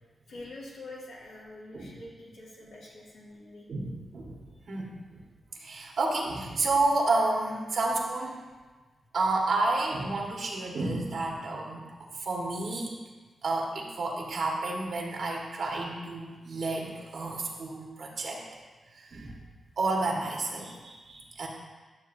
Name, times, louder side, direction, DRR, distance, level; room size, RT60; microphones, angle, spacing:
voice 1, 0.3-3.7, left 2 dB, 90° left, -6 dB, 2.3 m, -45 dB
voice 2, 3.7-4.3 4.7-5.2 5.6-8.4 9.1-11.9 12.2-12.9 13.4-18.4 19.0-19.3 19.8-21.5, right 2 dB, 70° right, -2 dB, 1.7 m, -30 dB
11.5 x 6.9 x 2.8 m, 1.3 s
cardioid pair, 75°, 0 cm